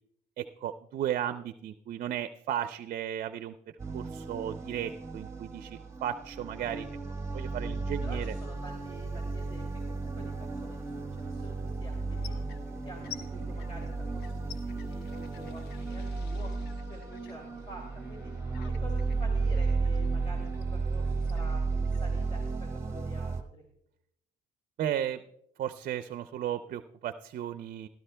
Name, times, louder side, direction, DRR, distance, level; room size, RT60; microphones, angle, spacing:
voice 1, 0.4-3.5 3.9-6.9 7.3-8.3 24.8-25.2 25.6-27.9, right 10 dB, 55° right, 11 dB, 0.5 m, -35 dB
sound 1, 3.8-23.4, right 4 dB, 15° right, 1.2 m, -33 dB
voice 2, 8.0-12.4 12.8-16.5 16.9-18.3 18.6-23.6, equal, 35° left, 0 dB, 2.6 m, -48 dB
sound 2, 12.1-22.9, left 8 dB, 80° left, 0.9 m, -52 dB
17.5 x 12.0 x 2.2 m, 0.73 s
cardioid pair, 110°, 17 cm